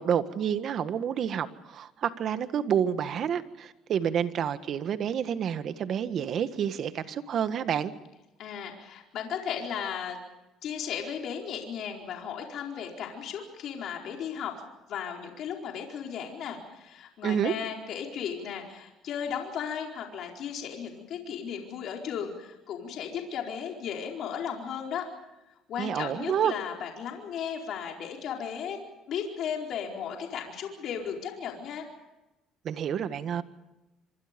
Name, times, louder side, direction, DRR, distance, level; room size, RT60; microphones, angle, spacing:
voice 1, 0.0-7.9 17.2-17.5 25.8-26.5 32.6-33.4, right 8 dB, 50° right, 11 dB, 1.6 m, -29 dB
voice 2, 8.4-10.2 10.6-14.6 14.9-25.0 25.7-28.8 29.1-31.9, left 7 dB, 60° left, 1 dB, 4.5 m, -35 dB
26.0 x 25.5 x 5.3 m, 0.98 s
cardioid pair, 120°, 0 cm